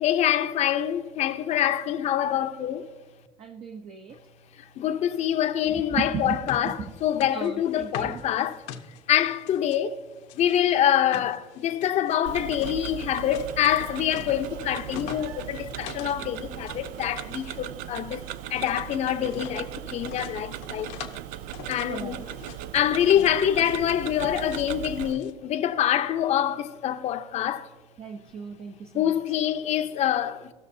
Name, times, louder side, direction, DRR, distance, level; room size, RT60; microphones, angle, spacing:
voice 1, 0.0-2.9 4.8-8.6 9.1-10.0 10.3-18.2 18.5-20.9 21.7-22.2 22.7-27.7 28.9-30.5, left 10 dB, 55° left, 0.7 m, -25 dB
voice 2, 3.4-4.2 5.7-7.0 7.3-8.3 21.9-22.3 28.0-29.2, right 6 dB, 45° right, 0.8 m, -36 dB
sound 1, 6.0-9.8 10.2-16.2 16.5-17.1 17.4-18.8 19.2-19.6 20.1-21.2 21.5-22.6 23.0-23.4 23.6-24.7 25.0-25.3, left 8 dB, 85° left, 1.1 m, -43 dB
Tick-tock, 12.3-25.1, right 13 dB, 75° right, 0.4 m, -38 dB
17.5 x 6.4 x 2.7 m
cardioid pair, 115°, 14 cm